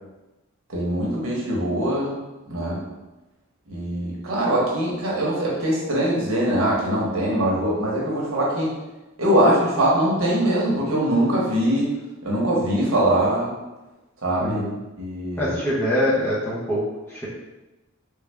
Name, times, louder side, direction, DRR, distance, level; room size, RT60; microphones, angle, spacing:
voice 1, 0.7-2.2 2.5-2.8 3.7-8.7 9.2-11.9 12.2-13.5 14.2-14.6 15.0-15.6, right 1 dB, 75° right, -4 dB, 1.0 m, -22 dB
voice 2, 14.4-14.7 15.4-16.8 17.1-17.3, equal, 10° left, -7 dB, 0.8 m, -24 dB
3.3 x 2.4 x 3.3 m, 1.1 s
head